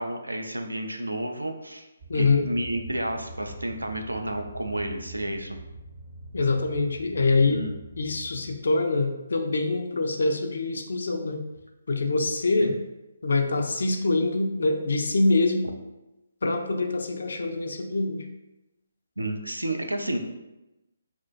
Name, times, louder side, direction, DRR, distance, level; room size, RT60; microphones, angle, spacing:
voice 1, 0.0-1.9 2.1-5.6 7.4-7.7 12.6-12.7 19.2-20.2, right 1 dB, 90° right, 4 dB, 0.3 m, -31 dB
sound 1, 2.0-8.6, right 1 dB, 40° right, 0.7 m, -44 dB
voice 2, 2.1-2.4 6.3-7.7 8.0-11.4 11.9-12.8 13.2-15.7 16.4-18.3, left 3 dB, 65° left, 5 dB, 0.3 m, -24 dB
2.3 x 2.1 x 2.5 m, 0.97 s
figure-of-eight pair, 140°, 0 cm